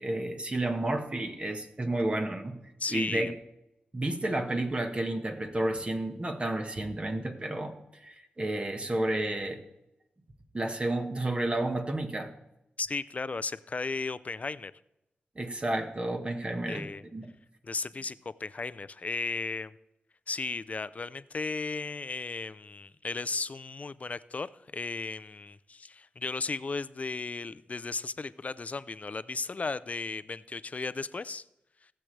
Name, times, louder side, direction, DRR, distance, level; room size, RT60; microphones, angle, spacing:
voice 1, 0.0-2.6 2.9-3.3 3.9-9.6 10.5-12.3 15.3-17.3, right 1 dB, 30° right, 5 dB, 1.5 m, -31 dB
voice 2, 2.8-3.3 12.8-14.7 16.7-17.0 17.6-19.7 20.3-31.4, left 4 dB, 45° left, 16 dB, 0.5 m, -35 dB
17.5 x 7.7 x 3.3 m, 0.87 s
cardioid pair, 55°, 4 cm